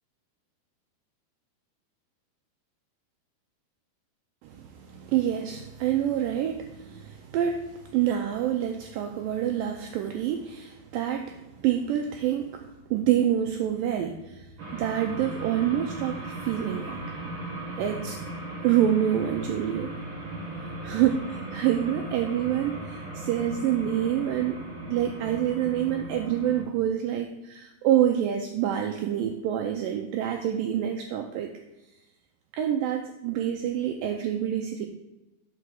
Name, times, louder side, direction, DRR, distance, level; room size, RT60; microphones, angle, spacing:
voice 1, 4.4-12.6 12.9-14.5 14.7-17.0 17.8-18.2 18.6-19.9 20.8-24.6 24.9-31.5 32.5-34.9, right 10 dB, 90° right, 3 dB, 1.9 m, -27 dB
sound 1, 14.6-26.6, right 1 dB, 50° right, 1.5 m, -37 dB
5.7 x 4.8 x 6.2 m, 0.96 s
omnidirectional pair, 4.5 m